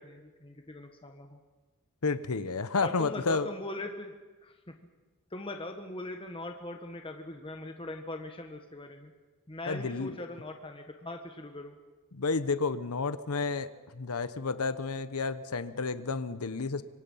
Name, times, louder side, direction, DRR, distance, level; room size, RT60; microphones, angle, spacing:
voice 1, 0.0-1.4 2.8-4.1 4.4-4.8 5.3-9.1 9.5-11.8, left 2 dB, 25° left, 4 dB, 1.6 m, -41 dB
voice 2, 2.0-3.5 9.7-10.2 12.1-16.8, left 4 dB, 80° left, 13 dB, 0.9 m, -31 dB
25.5 x 25.0 x 5.7 m, 1.3 s
head